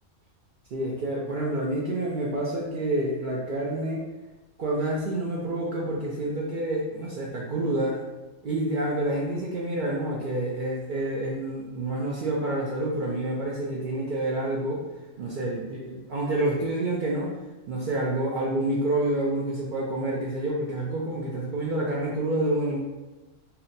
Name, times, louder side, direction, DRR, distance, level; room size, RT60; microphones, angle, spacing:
voice 1, 0.7-4.1 4.6-8.0 8.4-14.8 15.2-17.3 17.7-22.8, right 1 dB, 75° right, -3 dB, 0.4 m, -28 dB
2.8 x 2.1 x 3.9 m, 1.1 s
omnidirectional pair, 1.4 m